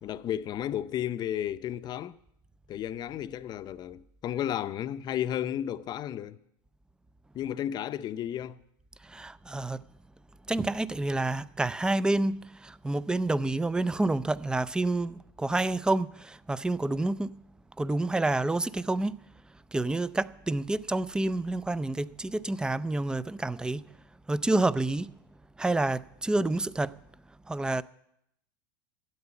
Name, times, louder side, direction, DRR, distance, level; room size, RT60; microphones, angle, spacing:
voice 1, 0.0-2.2 2.7-6.4 7.3-8.6, left 11 dB, 35° left, 0.7 m, -33 dB
voice 2, 9.0-9.8 10.5-17.4 17.8-19.2 19.7-23.8 24.3-25.1 25.6-26.9 27.5-27.8, right 2 dB, 5° right, 0.4 m, -28 dB
13.0 x 8.1 x 8.5 m
hypercardioid pair, 100°, 12 cm